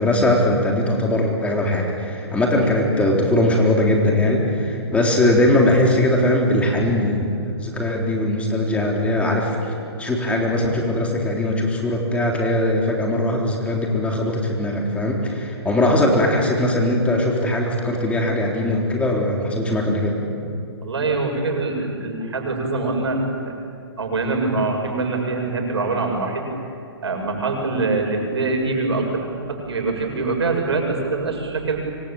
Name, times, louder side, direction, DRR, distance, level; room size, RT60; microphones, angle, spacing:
voice 1, 0.0-9.6 10.0-20.2, left 1 dB, 10° left, 0 dB, 3.6 m, -20 dB
voice 2, 20.8-23.6 24.0-26.5 27.0-31.8, right 3 dB, 80° right, 2 dB, 7.4 m, -24 dB
25.0 x 24.5 x 9.0 m, 2.5 s
hypercardioid pair, 140°, 14 cm